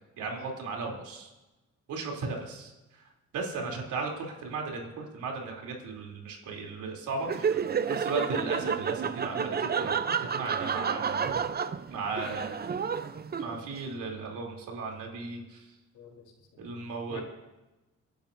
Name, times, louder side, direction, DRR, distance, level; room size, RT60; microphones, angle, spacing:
voice 1, 0.2-1.3 1.9-2.7 3.3-11.4 11.9-12.6 13.4-15.6 16.6-17.2, right 4 dB, 80° right, 0 dB, 3.3 m, -36 dB
Laughter, 7.2-13.8, right 6 dB, 30° right, 0.7 m, -30 dB
voice 2, 15.9-16.6 17.1-17.2, left 4 dB, 75° left, 0 dB, 3.8 m, -43 dB
28.0 x 11.5 x 2.7 m, 1.1 s
cardioid pair, 90°, 30 cm